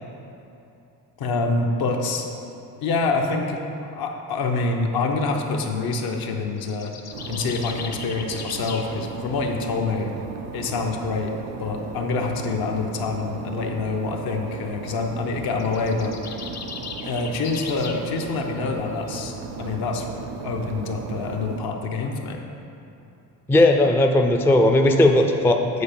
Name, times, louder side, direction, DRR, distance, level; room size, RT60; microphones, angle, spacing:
voice 1, 1.2-2.3 2.8-3.6 3.9-6.9 7.2-10.1 10.5-11.3 11.6-16.1 17.0-19.3 19.6-20.1 20.4-22.5, left 3 dB, 70° left, 2 dB, 1.0 m, -26 dB
sound 1, 6.6-8.9 15.5-18.0, left 5 dB, 45° left, 0.7 m, -37 dB
sound 2, 7.1-21.6, right 5 dB, 90° right, 0.7 m, -36 dB
voice 2, 23.5-25.8, left 1 dB, 5° left, 3 dB, 0.3 m, -17 dB
8.4 x 4.4 x 6.9 m, 2.8 s
cardioid pair, 135°, 38 cm